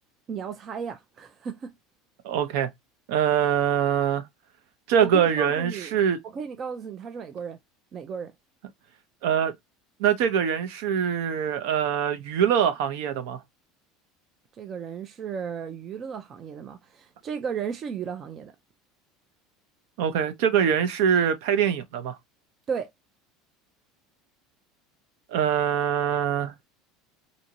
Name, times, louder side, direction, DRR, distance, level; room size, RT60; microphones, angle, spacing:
voice 1, 0.3-1.7 5.0-6.0 6.2-7.6 7.9-8.3 14.6-18.5 22.7-22.9, right 6 dB, 25° right, 0.3 m, -34 dB
voice 2, 2.2-2.7 3.1-4.2 4.9-6.2 9.2-9.5 10.0-13.4 20.0-22.2 25.3-26.5, right 8 dB, 65° right, 0.6 m, -23 dB
2.6 x 2.6 x 2.8 m
cardioid pair, 175°, 0 cm